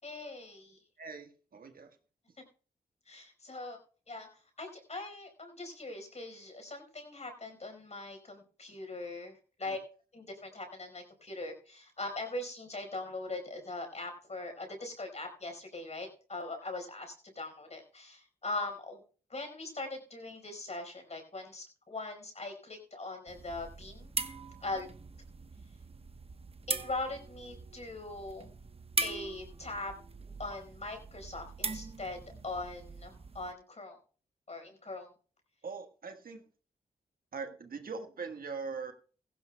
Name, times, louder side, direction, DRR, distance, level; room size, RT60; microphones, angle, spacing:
voice 1, 0.0-0.8 3.1-3.8 4.1-4.3 4.6-9.8 10.1-19.0 19.3-24.1 24.6-24.9 26.7-28.5 29.0-29.9 30.4-32.2 32.4-34.0 34.5-35.1, left 2 dB, 40° left, 5 dB, 4.8 m, -41 dB
voice 2, 1.0-2.0 9.7-9.8 35.6-36.4 37.3-38.9, right 5 dB, 60° right, 6 dB, 1.5 m, -41 dB
sound 1, 23.3-33.5, right 3 dB, 35° right, 1.1 m, -41 dB
16.0 x 15.5 x 2.3 m, 0.39 s
supercardioid pair, 50°, 17 cm